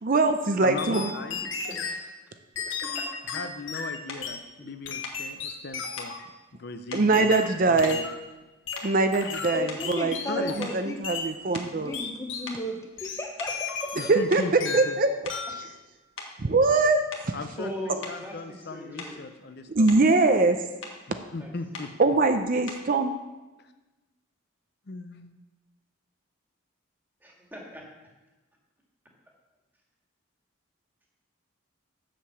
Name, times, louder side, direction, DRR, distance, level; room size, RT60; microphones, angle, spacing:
voice 1, 0.0-1.1 6.9-8.0 8.8-10.2 10.6-11.9 14.1-14.4 14.7-15.7 16.4-17.0 19.7-20.6 22.0-23.1, right 3 dB, 45° right, 7 dB, 0.5 m, -22 dB
voice 2, 0.6-1.4 3.3-6.1 6.5-8.0 10.3-10.6 14.0-15.0 17.3-19.9 21.1-21.9 23.6-23.7 24.9-25.3, left 3 dB, 50° left, 8 dB, 0.6 m, -38 dB
sound 1, 0.8-2.0 2.6-4.4 4.9-6.3 7.1-8.2 8.7-10.8 11.0-11.3 11.9-12.5 13.0-14.3 14.6-15.0 15.3-15.6, left 5 dB, 65° left, 1.0 m, -35 dB
voice 3, 1.4-2.2 2.7-3.1 4.6-4.7 17.6-19.2 21.4-21.9 27.2-27.9, left 1 dB, 10° right, -1 dB, 1.7 m, -40 dB
sound 2, 4.1-4.3 5.0-5.3 6.0-6.2 6.9-7.1 7.8-8.4 8.7-9.1 9.6-10.0 10.6-12.2 12.5-12.7 13.4-13.7 14.3-14.5 15.1-15.5 16.2-16.4 17.1-17.4 18.0-18.2 19.0-19.3 19.6-20.1 20.8-21.0 21.7-22.0 22.7-22.9, left 4 dB, 85° left, 1.5 m, -41 dB
voice 4, 9.5-14.0, equal, 15° left, 3 dB, 0.9 m, -35 dB
7.6 x 6.8 x 6.9 m, 1.1 s
head